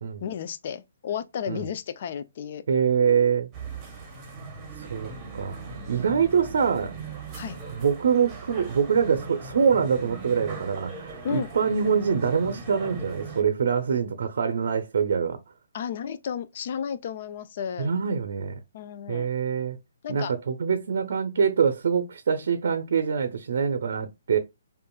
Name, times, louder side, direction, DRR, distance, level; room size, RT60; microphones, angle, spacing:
voice 1, 0.2-2.6 7.3-7.6 11.2-11.5 15.7-17.9 18.7-19.3 20.0-20.3, left 8 dB, 40° left, 0.4 m, -33 dB
voice 2, 2.7-3.5 4.8-7.0 7.7-15.4 17.8-18.6 19.1-19.8 20.1-24.4, right 6 dB, 60° right, 0.6 m, -24 dB
sound 1, 3.5-13.4, right 4 dB, 15° right, 1.0 m, -39 dB
5.2 x 2.5 x 2.3 m
hypercardioid pair, 165°, 0 cm